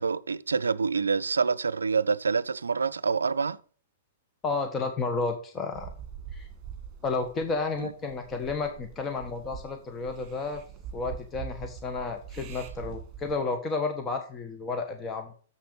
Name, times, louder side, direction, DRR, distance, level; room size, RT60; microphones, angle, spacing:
voice 1, 0.0-3.6 7.8-7.9, right 5 dB, 90° right, 0.4 m, -27 dB
voice 2, 4.4-5.9 6.3-6.5 7.0-10.6 10.9-15.3, left 3 dB, 25° left, 1.3 m, -31 dB
sound 1, 5.7-13.3, right 7 dB, 35° right, 2.0 m, -44 dB
7.3 x 5.9 x 6.7 m
hypercardioid pair, 115°, 0 cm